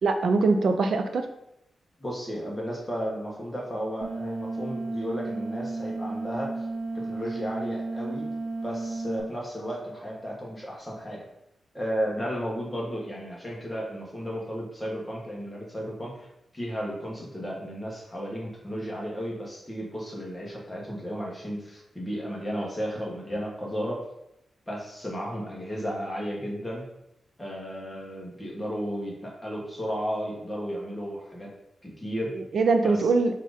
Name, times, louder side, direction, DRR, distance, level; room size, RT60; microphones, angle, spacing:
voice 1, 0.0-1.3 32.5-33.3, right 3 dB, 60° right, 7 dB, 0.5 m, -22 dB
voice 2, 2.0-6.7 6.9-8.4 8.6-11.2 11.7-16.3 16.5-24.0 24.7-26.9 27.4-31.5 31.8-32.3 32.8-33.1, equal, 10° left, -3 dB, 1.0 m, -34 dB
sound 1, 4.0-9.2, right 2 dB, 35° right, 1.0 m, -33 dB
4.2 x 2.5 x 4.8 m, 0.81 s
wide cardioid pair, 170°, 0 cm